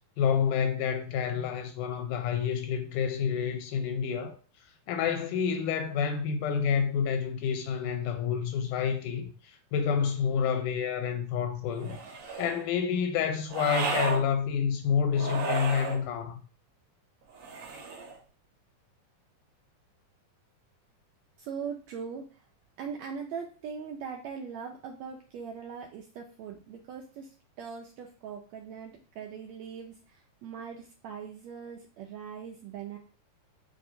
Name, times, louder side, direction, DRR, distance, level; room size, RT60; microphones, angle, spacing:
voice 1, 0.2-4.4 4.9-12.0 12.4-16.4, left 7 dB, 85° left, 2.1 m, -28 dB
sound 1, 11.8-12.6 13.5-14.2 15.1-16.0 17.3-18.2, right 4 dB, 65° right, 1.5 m, -33 dB
voice 2, 21.4-22.4 22.8-33.0, right 6 dB, 80° right, 1.6 m, -41 dB
7.2 x 2.7 x 2.6 m
omnidirectional pair, 3.7 m